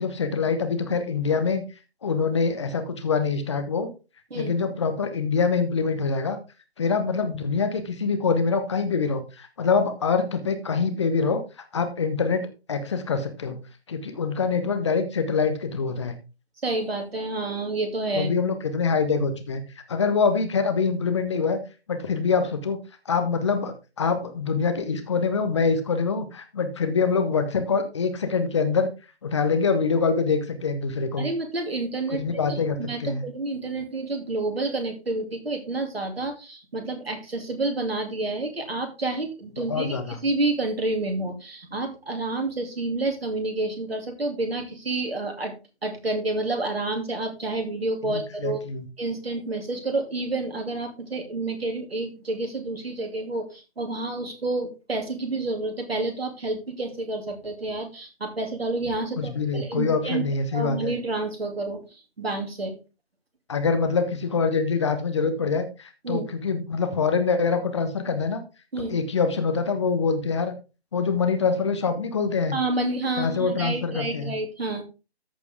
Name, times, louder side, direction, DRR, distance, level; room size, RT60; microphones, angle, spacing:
voice 1, 0.0-1.6 2.0-3.9 4.3-6.4 6.8-11.4 11.7-13.6 13.9-16.1 18.1-19.6 19.9-21.6 21.9-22.8 23.0-28.9 29.2-31.3 32.1-33.2 39.6-40.2 48.0-48.9 59.2-60.9 63.5-68.4 68.9-70.5 70.9-72.6 73.2-74.3, left 5 dB, 25° left, 8 dB, 1.1 m, -25 dB
voice 2, 16.6-18.3 31.2-32.2 32.6-45.5 45.8-48.6 49.0-60.2 60.5-62.8 66.0-66.2 68.7-68.9 72.5-74.8, right 2 dB, 65° right, 4 dB, 2.6 m, -29 dB
14.0 x 4.9 x 3.4 m, 0.30 s
figure-of-eight pair, 150°, 32 cm